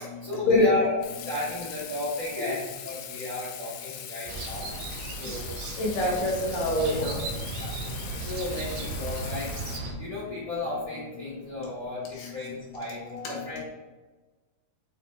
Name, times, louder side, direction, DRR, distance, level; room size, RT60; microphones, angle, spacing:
voice 1, 0.2-0.9 1.2-4.7 5.0-5.5 6.0-6.1 7.5-7.7 8.2-9.5 10.0-13.6, left 2 dB, 50° left, -10 dB, 0.4 m, -33 dB
Water tap faucet / Sink (filling or washing), 1.0-9.8, left 10 dB, 90° left, 2.7 m, -41 dB
sound 1, 4.3-9.9, right 3 dB, 85° right, 2.8 m, -36 dB
voice 2, 5.8-7.2 12.2-12.3, left 1 dB, 75° left, -3 dB, 3.1 m, -25 dB
8.7 x 4.1 x 3.1 m, 1.2 s
omnidirectional pair, 4.6 m